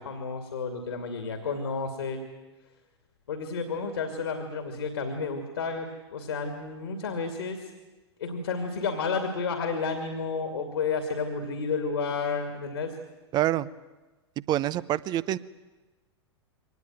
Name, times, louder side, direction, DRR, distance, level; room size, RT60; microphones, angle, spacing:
voice 1, 0.0-2.2 3.3-7.7 8.2-12.9, left 4 dB, 65° left, 7 dB, 2.5 m, -31 dB
voice 2, 13.3-13.7 14.5-15.4, right 13 dB, 30° right, 19 dB, 0.7 m, -26 dB
24.0 x 19.0 x 9.3 m, 1.2 s
figure-of-eight pair, 90°, 14 cm